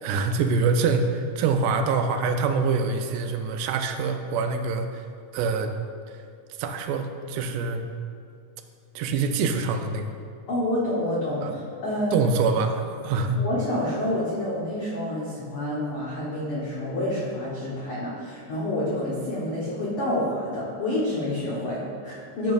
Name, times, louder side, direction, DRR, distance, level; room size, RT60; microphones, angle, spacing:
voice 1, 0.0-5.1 5.3-5.7 6.6-7.8 9.0-10.1 11.4-11.5 12.1-13.4, right 4 dB, 80° right, 5 dB, 2.0 m, -25 dB
voice 2, 10.5-12.1 13.3-22.5, left 1 dB, 85° left, -7 dB, 1.2 m, -28 dB
10.5 x 5.1 x 2.4 m, 2.4 s
omnidirectional pair, 4.0 m